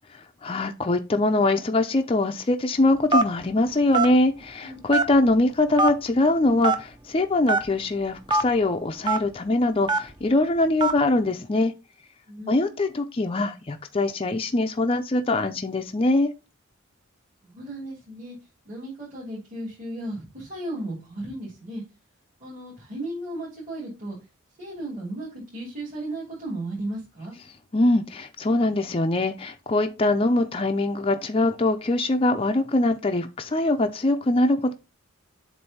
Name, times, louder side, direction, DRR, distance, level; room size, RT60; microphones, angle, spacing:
voice 1, 0.4-11.7 12.5-16.3 27.7-34.7, left 2 dB, 25° left, 0.5 m, -23 dB
Telephone, 3.1-3.4 3.9-4.1 4.9-5.3 5.8-5.9 6.6-6.8 7.5-7.6 8.3-8.4 9.1-9.2 9.9-10.1 10.8-11.0, right 3 dB, 20° right, 0.6 m, -21 dB
voice 2, 12.3-12.8 17.4-18.3 18.6-21.8 22.4-24.2 24.6-27.3, right 1 dB, 40° right, 3.1 m, -35 dB
7.7 x 2.7 x 5.5 m
head